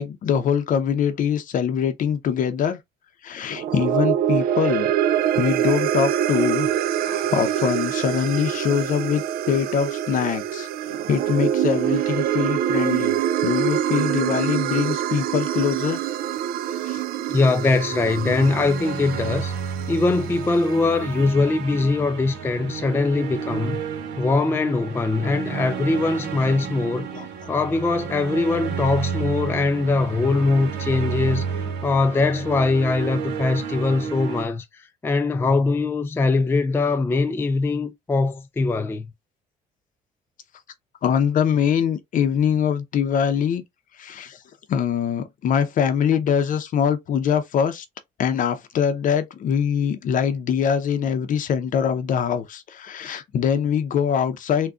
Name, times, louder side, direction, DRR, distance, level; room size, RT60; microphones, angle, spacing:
voice 1, 0.0-2.8 3.2-4.9 5.3-6.7 7.0-10.7 11.1-13.2 13.4-16.0 16.7-17.0 27.1-27.3 32.0-32.1 41.0-43.6 44.0-44.4 44.7-47.9 48.2-54.7, left 8 dB, 50° left, 0.6 m, -23 dB
sound 1, 3.5-20.0, right 10 dB, 60° right, 0.4 m, -25 dB
voice 2, 17.3-19.5 19.9-23.8 24.2-27.1 27.5-31.4 31.8-39.1, left 3 dB, 15° left, 0.3 m, -22 dB
sound 2, 17.9-34.5, right 6 dB, 80° right, 0.9 m, -31 dB
3.7 x 2.2 x 2.3 m
cardioid pair, 110°, 17 cm